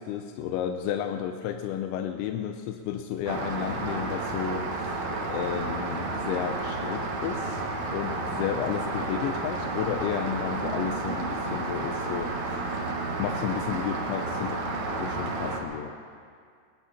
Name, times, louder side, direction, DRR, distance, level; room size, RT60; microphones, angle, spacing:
voice 1, 0.0-7.7 7.9-12.8 13.2-14.6 14.9-15.9, left 9 dB, 80° left, 5 dB, 2.8 m, -32 dB
Rain, 3.3-15.6, right 2 dB, 75° right, 1.7 m, -31 dB
22.5 x 19.0 x 2.9 m, 2.2 s
omnidirectional pair, 5.6 m